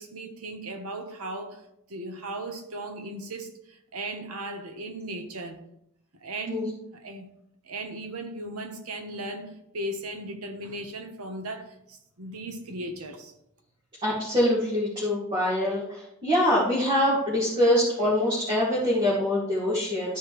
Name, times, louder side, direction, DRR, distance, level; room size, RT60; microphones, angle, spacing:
voice 1, 0.0-1.6 1.9-5.6 6.2-7.3 7.6-13.3, right 1 dB, 85° right, 1.1 m, -37 dB
voice 2, 14.0-20.2, left 1 dB, 20° right, 2.1 m, -24 dB
12.5 x 5.0 x 3.2 m
head